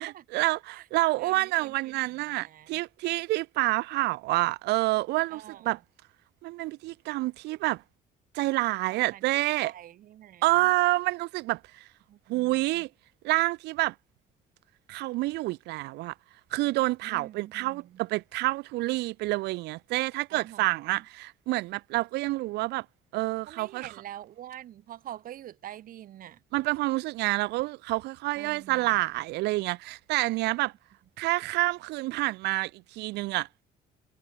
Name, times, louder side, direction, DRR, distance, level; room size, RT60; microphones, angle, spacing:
voice 1, 0.0-5.8 6.4-7.8 8.3-9.7 10.4-11.9 12.3-12.9 13.2-13.9 14.9-16.1 16.5-22.9 23.1-23.9 26.5-30.7 31.2-33.6, right 20 dB, 85° right, 0.7 m, -28 dB
voice 2, 1.1-2.0 2.4-2.8 5.3-5.8 8.9-9.2 9.6-10.7 12.1-12.8 17.0-18.0 20.3-21.0 23.5-26.4 28.4-29.0, right 12 dB, 55° right, 0.9 m, -46 dB
cardioid pair, 125°, 17 cm